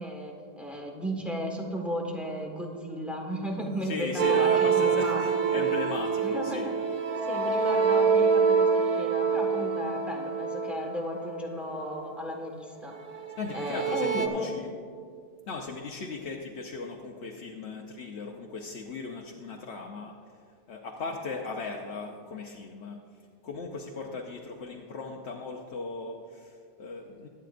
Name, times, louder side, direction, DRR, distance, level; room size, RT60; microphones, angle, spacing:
voice 1, 0.0-5.8 6.2-6.7 7.3-12.9 13.5-14.5, equal, ahead, 0 dB, 1.5 m, -35 dB
Marimba xylophone, 2.7-6.1, right 1 dB, 80° right, 2.1 m, -49 dB
voice 2, 3.8-6.7 7.5-7.6 13.4-14.7 15.5-20.1 20.7-23.0 23.4-27.3, left 4 dB, 85° left, 0 dB, 1.1 m, -37 dB
sound 1, 4.2-11.9 12.9-14.3, right 6 dB, 45° right, 0.6 m, -26 dB
22.0 x 8.8 x 2.5 m, 2.1 s
omnidirectional pair, 1.1 m